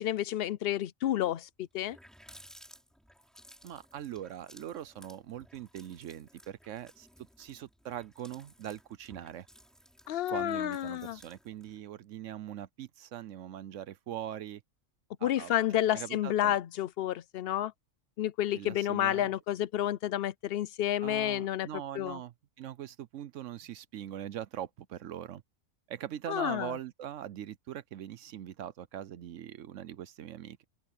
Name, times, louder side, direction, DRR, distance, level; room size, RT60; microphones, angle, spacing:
voice 1, 0.0-1.5 1.7-2.0 10.1-11.2 15.2-17.7 18.2-21.7 22.0-22.2 26.3-26.7, left 12 dB, 60° left, 0.7 m, -30 dB
Water tap faucet, 1.7-11.8, equal, ahead, 5.9 m, -58 dB
voice 2, 3.6-7.1 7.4-9.5 10.3-14.6 15.2-15.5 15.9-16.6 18.5-19.3 21.0-25.4 25.9-30.6, right 11 dB, 75° right, 1.0 m, -42 dB
omnidirectional pair, 1.3 m